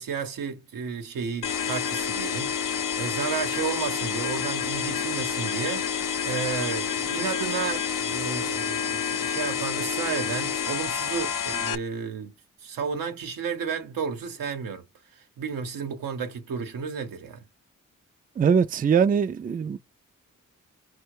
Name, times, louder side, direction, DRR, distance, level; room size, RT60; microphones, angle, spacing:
voice 1, 0.0-12.3 12.6-14.8 15.1-17.4, right 6 dB, 90° right, 0.8 m, -32 dB
sound 1, 1.4-11.8, left 7 dB, 70° left, 0.5 m, -29 dB
voice 2, 18.4-19.8, right 6 dB, 25° right, 0.3 m, -22 dB
4.3 x 2.2 x 4.6 m
cardioid pair, 45°, 33 cm